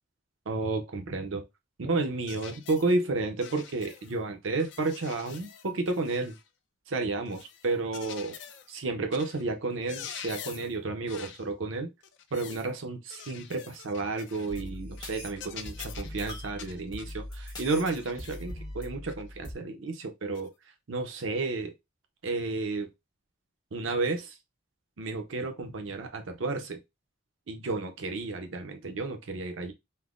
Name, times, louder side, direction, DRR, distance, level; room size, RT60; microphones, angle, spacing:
voice 1, 0.5-1.5 1.8-6.3 6.9-8.4 8.7-11.9 12.3-20.5 20.9-21.7 22.2-22.9 23.7-24.4 25.0-26.8 27.5-29.7, right 3 dB, 85° right, 0.7 m, -32 dB
sound 1, 2.3-2.9 3.4-4.2 4.6-6.5 7.3-8.7 9.1-9.4 9.7-10.8 11.1-11.5 12.0-12.7 13.1-14.7 15.0-15.1 15.4-17.2 17.9-18.5 19.1-19.2 20.3-20.5, left 8 dB, 65° left, 0.4 m, -46 dB
sound 2, 14.5-19.5, left 1 dB, 20° left, 0.9 m, -41 dB
5.4 x 2.0 x 2.4 m
head